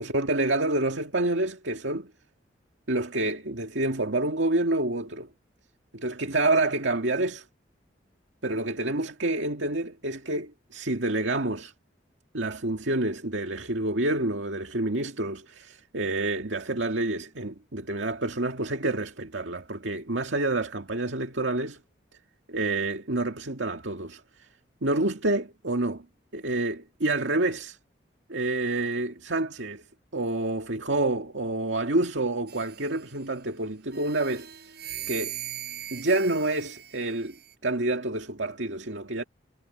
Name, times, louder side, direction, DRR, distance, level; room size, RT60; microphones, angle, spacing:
voice 1, 0.0-2.1 2.9-5.3 5.9-7.5 8.4-11.7 12.3-21.8 22.5-24.5 24.8-26.1 26.3-27.8 28.3-29.8 30.1-34.5 35.1-35.4 35.9-37.4 37.6-39.2, right 2 dB, 85° right, 2.0 m, -28 dB
sound 1, 32.5-33.4 33.9-37.5, right 12 dB, 60° right, 7.5 m, -40 dB
head